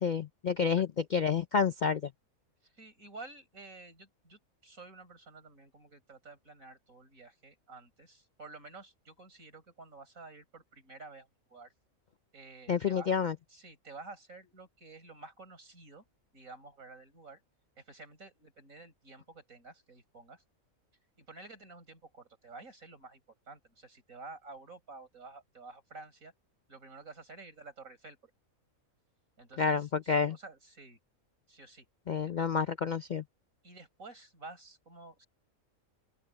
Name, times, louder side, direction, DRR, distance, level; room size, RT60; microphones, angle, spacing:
voice 1, 0.0-0.9 1.1-2.0 12.7-13.3 29.6-30.4 32.1-33.2, left 6 dB, 55° left, 0.5 m, -29 dB
voice 2, 2.6-11.7 12.3-13.2 13.5-16.0 16.3-17.4 17.8-20.4 21.2-23.2 23.5-26.3 26.7-28.3 29.4-31.0 31.5-31.9 32.2-32.5 33.6-35.3, right 3 dB, 70° right, 6.0 m, -51 dB
open air
omnidirectional pair, 1.5 m